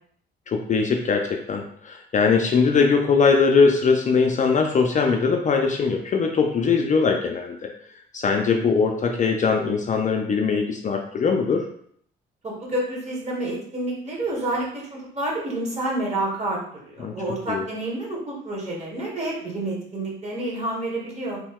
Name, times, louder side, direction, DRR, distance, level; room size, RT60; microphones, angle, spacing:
voice 1, 0.5-11.7 17.0-17.2 17.5-17.6, left 5 dB, 40° left, 2 dB, 0.4 m, -21 dB
voice 2, 12.4-21.4, right 1 dB, 35° right, -3 dB, 1.3 m, -29 dB
3.0 x 2.2 x 3.5 m, 0.63 s
cardioid pair, 90°, 20 cm